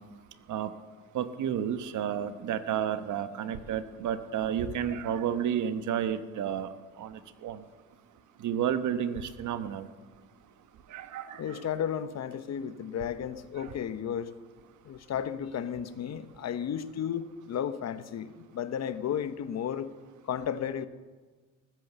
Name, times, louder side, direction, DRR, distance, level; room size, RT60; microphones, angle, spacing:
voice 1, 1.1-6.7 7.0-7.1 7.4-7.6 8.4-9.9 10.9-11.4, right 9 dB, 75° right, 11 dB, 1.1 m, -31 dB
voice 2, 11.4-14.3 14.8-19.9 20.3-20.9, left 8 dB, 60° left, 13 dB, 1.0 m, -33 dB
19.5 x 9.2 x 6.8 m, 1.4 s
cardioid pair, 90°, 30 cm